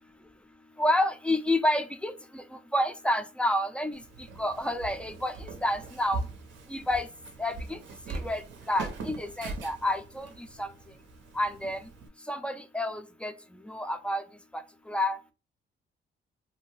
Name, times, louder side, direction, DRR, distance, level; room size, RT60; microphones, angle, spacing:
voice 1, 0.8-4.0 4.4-6.2 6.7-7.1 7.4-7.8 8.1-10.7 11.3-11.8 12.3-13.3 13.6-14.2 14.5-14.6 14.9-15.2, left 1 dB, 5° left, 8 dB, 0.3 m, -29 dB
Walk footsteps, 3.9-12.1, right 3 dB, 70° right, 0.6 m, -41 dB
2.5 x 2.2 x 3.1 m, 0.32 s
cardioid pair, 90°, 20 cm